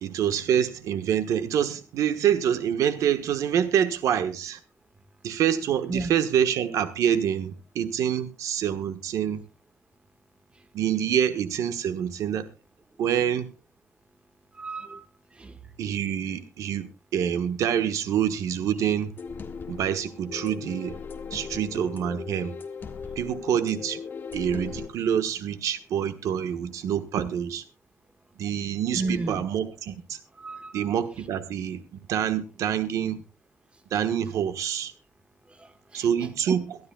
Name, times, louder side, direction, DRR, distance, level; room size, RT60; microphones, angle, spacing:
voice 1, 0.0-4.6 5.2-9.4 10.7-12.5 13.0-13.5 15.8-19.1 19.7-21.0 21.3-22.6 23.2-24.0 24.3-27.6 28.4-30.2 30.7-33.2 33.9-34.9 35.9-36.8, right 9 dB, 85° right, 11 dB, 1.3 m, -26 dB
voice 2, 14.6-15.0 15.4-15.6 28.9-29.4 30.4-30.8 35.6-36.0 36.5-36.6, right 3 dB, 20° right, 10 dB, 1.6 m, -32 dB
sound 1, 19.2-24.9, left 5 dB, 40° left, 1.7 m, -38 dB
23.0 x 12.5 x 2.3 m, 0.30 s
cardioid pair, 135°, 6 cm